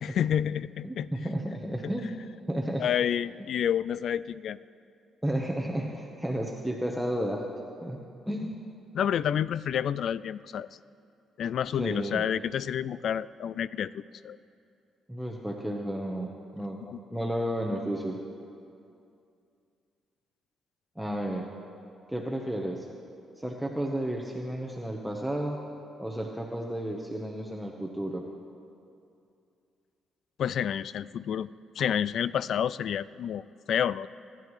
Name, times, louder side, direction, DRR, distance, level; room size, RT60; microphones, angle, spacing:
voice 1, 0.0-1.1 2.8-4.6 8.9-10.7 11.4-14.4 16.8-17.0 30.4-31.5 31.8-34.1, left 9 dB, 65° left, 18 dB, 0.3 m, -29 dB
voice 2, 0.8-2.1 2.5-2.9 5.2-7.5 7.8-8.0 8.3-8.5 11.8-12.2 15.1-16.8 17.1-18.2 21.0-21.5 22.1-22.9 23.4-25.6 26.0-28.3, right 1 dB, 5° right, -1 dB, 1.1 m, -32 dB
26.0 x 10.5 x 3.2 m, 2.5 s
cardioid pair, 90°, 0 cm